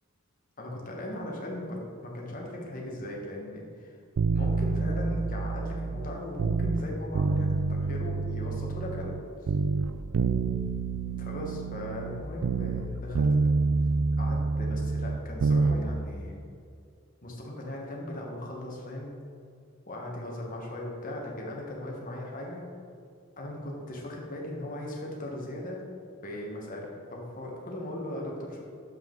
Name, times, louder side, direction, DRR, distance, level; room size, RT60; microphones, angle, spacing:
voice 1, 0.6-4.0 4.3-9.1 11.1-13.4 14.2-16.5 17.2-19.2 19.9-22.6 23.4-25.8 26.2-28.6, left 1 dB, 40° left, -1 dB, 1.4 m, -38 dB
sound 1, 4.2-6.8 7.1-9.2 9.5-12.9 13.1-15.8 16.1-16.2, right 4 dB, 70° right, 0.4 m, -27 dB
7.4 x 5.6 x 3.9 m, 2.3 s
head